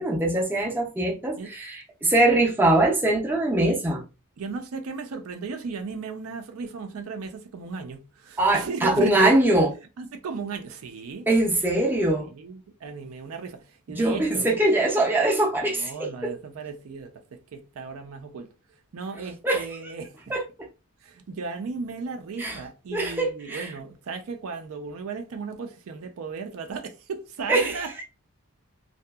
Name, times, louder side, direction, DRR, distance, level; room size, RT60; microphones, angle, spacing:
voice 1, 0.0-4.0 8.4-9.7 11.3-12.3 13.9-16.3 19.4-19.7 20.3-20.4 22.4-22.6 22.9-23.7 27.5-27.8, right 1 dB, 10° right, 0.5 m, -22 dB
voice 2, 4.4-9.3 10.0-11.3 12.3-14.4 15.7-18.5 18.9-20.3 21.0-27.9, right 4 dB, 65° right, 0.4 m, -36 dB
2.7 x 2.3 x 2.2 m
head